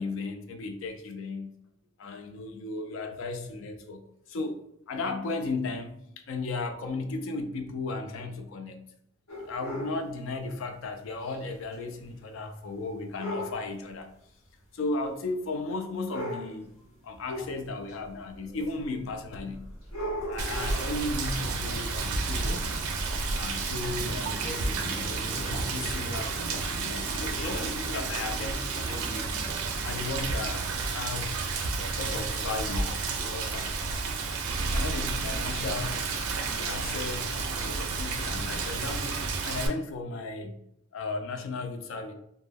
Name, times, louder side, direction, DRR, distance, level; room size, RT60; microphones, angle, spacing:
voice 1, 0.0-1.5 2.0-4.6 4.9-8.8 9.4-14.1 14.7-16.7 17.0-19.6 20.3-22.8 23.4-29.3 29.8-30.7 30.9-31.4 31.8-33.7 34.7-40.5 40.9-42.1, left 3 dB, 60° left, 6 dB, 0.3 m, -35 dB
sound 1, 9.3-10.0 11.2-11.4 11.7-11.8 13.2-13.6 14.6-14.7 15.7-15.8 16.1-16.6 17.3-17.9 18.7-18.8 19.8-20.9 23.4-23.5 24.1-24.2 25.1-25.2, equal, 90° left, 0.9 m, -36 dB
sound 2, 16.6-34.4, equal, 5° right, 0.5 m, -44 dB
Rain, 20.4-39.7, right 4 dB, 80° right, 0.4 m, -31 dB
2.1 x 2.1 x 3.3 m, 0.75 s
head